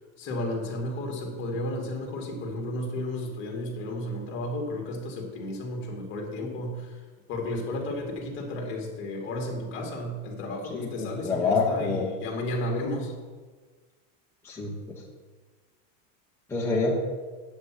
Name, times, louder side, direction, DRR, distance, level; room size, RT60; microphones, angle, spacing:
voice 1, 0.2-7.0 7.3-13.2, left 1 dB, 30° left, 0 dB, 2.3 m, -33 dB
voice 2, 10.7-12.1 14.4-15.0 16.5-17.0, left 3 dB, 5° left, -5 dB, 1.1 m, -27 dB
8.6 x 6.0 x 7.6 m, 1.4 s
supercardioid pair, 160°, 39 cm